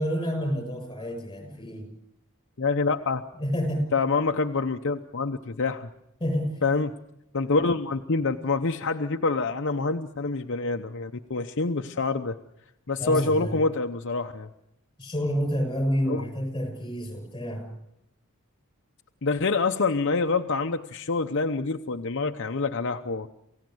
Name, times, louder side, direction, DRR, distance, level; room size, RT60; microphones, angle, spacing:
voice 1, 0.0-1.9 3.4-3.8 6.2-6.6 13.0-13.6 15.0-17.7, equal, 20° left, 6 dB, 6.6 m, -29 dB
voice 2, 2.6-3.2 3.9-5.9 6.6-6.9 7.3-12.4 12.9-14.5 16.1-16.2 19.2-23.3, left 3 dB, 60° left, 5 dB, 0.8 m, -26 dB
28.5 x 16.5 x 7.9 m, 0.83 s
head